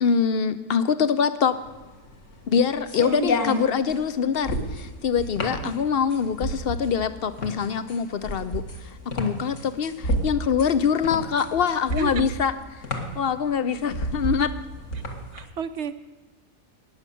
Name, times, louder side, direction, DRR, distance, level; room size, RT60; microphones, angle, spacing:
voice 1, 0.0-1.6 2.5-12.8 13.2-14.5, left 7 dB, 70° left, 13 dB, 0.5 m, -24 dB
sound 1, 1.5-15.4, equal, 50° left, 1.9 m, -31 dB
voice 2, 15.3-15.9, right 8 dB, 60° right, 11 dB, 0.7 m, -33 dB
19.0 x 7.4 x 6.9 m, 1.2 s
omnidirectional pair, 1.7 m